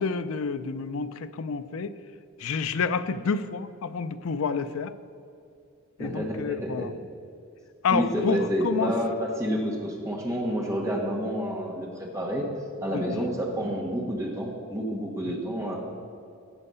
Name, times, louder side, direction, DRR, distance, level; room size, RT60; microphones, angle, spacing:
voice 1, 0.0-1.9 2.4-4.9 6.0-6.9 7.8-8.9 12.9-13.0, left 5 dB, 75° left, 12 dB, 0.4 m, -29 dB
voice 2, 6.0-7.0 7.9-12.5 12.8-15.8, equal, 15° right, -1 dB, 1.4 m, -29 dB
15.0 x 5.5 x 5.5 m, 2.5 s
head